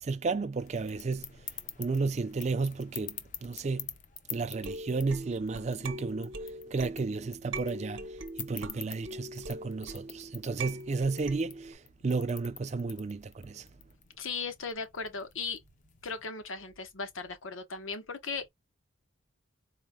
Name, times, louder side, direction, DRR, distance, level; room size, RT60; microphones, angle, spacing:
voice 1, 0.0-1.4 1.8-3.9 4.3-6.3 6.7-8.1 8.4-13.7, right 4 dB, 35° right, 0.4 m, -33 dB
sound 1, 0.6-16.3, left 10 dB, 40° left, 0.5 m, -48 dB
sound 2, 4.5-11.7, right 1 dB, 70° right, 0.7 m, -42 dB
voice 2, 14.2-15.6 16.0-18.5, left 4 dB, 80° left, 1.0 m, -37 dB
4.2 x 2.1 x 3.5 m
head